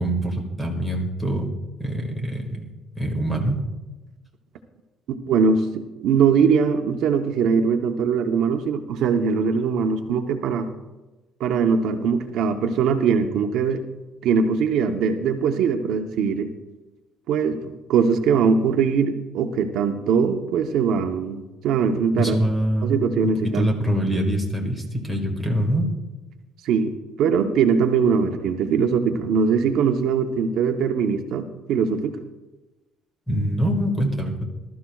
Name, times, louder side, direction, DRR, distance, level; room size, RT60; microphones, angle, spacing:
voice 1, 0.0-1.5 1.8-3.6 22.2-22.9 23.2-25.9 33.3-34.4, right 1 dB, 5° left, 2 dB, 1.8 m, -24 dB
voice 2, 5.1-10.7 11.4-13.8 14.2-16.5 17.3-22.4 22.8-23.7 26.6-32.2, right 6 dB, 70° right, 6 dB, 0.8 m, -21 dB
19.5 x 13.0 x 2.3 m, 1.1 s
cardioid pair, 145°, 0 cm